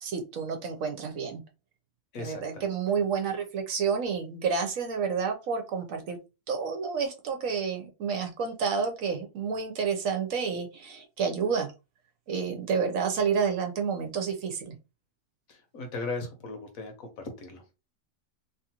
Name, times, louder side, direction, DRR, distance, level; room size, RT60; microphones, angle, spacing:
voice 1, 0.0-1.4 2.2-6.2 6.5-11.7 12.3-14.8, right 6 dB, 65° right, 4 dB, 1.0 m, -29 dB
voice 2, 2.1-2.7 15.5-17.8, left 3 dB, 65° left, 5 dB, 1.2 m, -38 dB
3.0 x 2.4 x 2.8 m, 0.28 s
omnidirectional pair, 1.6 m